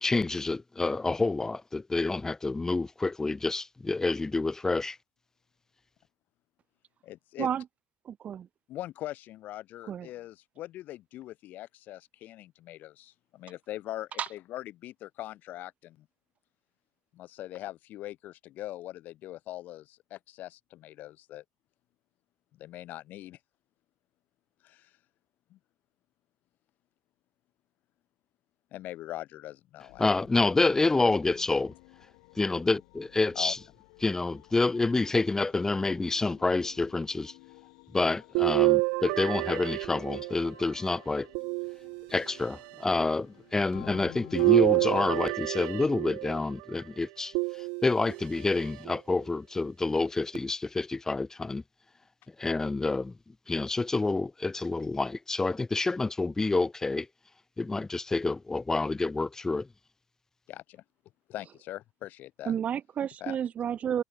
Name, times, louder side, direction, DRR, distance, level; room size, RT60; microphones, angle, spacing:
voice 1, 0.0-5.0 30.0-31.7 32.4-33.6 34.0-37.3 37.9-41.3 42.1-47.3 47.8-51.6 52.4-53.1 53.5-57.1 57.6-59.7, left 3 dB, 15° left, 0.4 m, -28 dB
voice 2, 7.0-7.5 8.7-16.1 17.1-21.4 22.6-23.4 24.6-24.9 25.5-25.6 28.7-30.0 33.3-33.5 60.5-60.8 61.3-62.5 63.2-63.4, left 14 dB, 60° left, 3.1 m, -42 dB
voice 3, 8.0-8.5 9.9-10.1 14.2-14.3 62.4-64.0, right 9 dB, 45° right, 1.0 m, -31 dB
sound 1, 29.9-45.2, left 40 dB or more, 80° left, 1.6 m, -51 dB
sound 2, 38.3-40.6 41.3-42.4 44.3-46.4 47.3-48.2 48.9-49.0 50.3-50.4, right 33 dB, 75° right, 0.3 m, -27 dB
hypercardioid pair, 75°, 3 cm